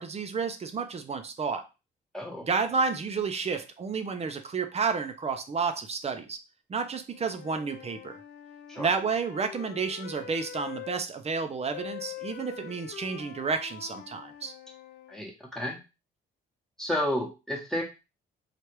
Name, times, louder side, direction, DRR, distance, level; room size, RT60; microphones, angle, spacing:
voice 1, 0.0-1.7 2.4-6.4 6.7-8.2 8.8-14.5, right 5 dB, 35° right, 8 dB, 0.5 m, -31 dB
voice 2, 2.1-2.5 8.7-8.9 15.1-15.8 16.8-17.8, left 1 dB, 5° left, -1 dB, 1.0 m, -31 dB
Wind instrument woodwind instrument, 7.1-11.0 11.7-15.2, left 10 dB, 60° left, 0.5 m, -44 dB
3.2 x 2.4 x 3.0 m, 0.28 s
cardioid pair, 90°, 20 cm